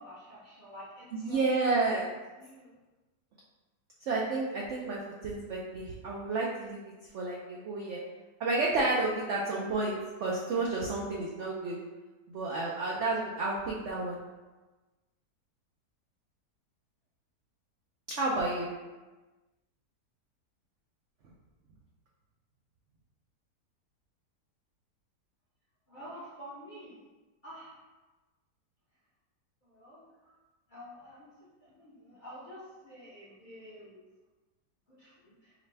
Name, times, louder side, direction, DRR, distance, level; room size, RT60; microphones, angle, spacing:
voice 1, 0.0-2.0 2.4-2.7 25.9-27.0 27.4-27.8 29.6-30.3 30.7-31.3 31.6-34.0 34.9-35.5, equal, 45° left, -8 dB, 0.7 m, -48 dB
voice 2, 1.1-2.1 4.1-6.8 7.1-8.0 8.4-11.8 12.3-14.2 18.2-18.7, right 3 dB, 75° right, -4 dB, 0.6 m, -31 dB
4.9 x 2.2 x 3.2 m, 1.2 s
omnidirectional pair, 1.8 m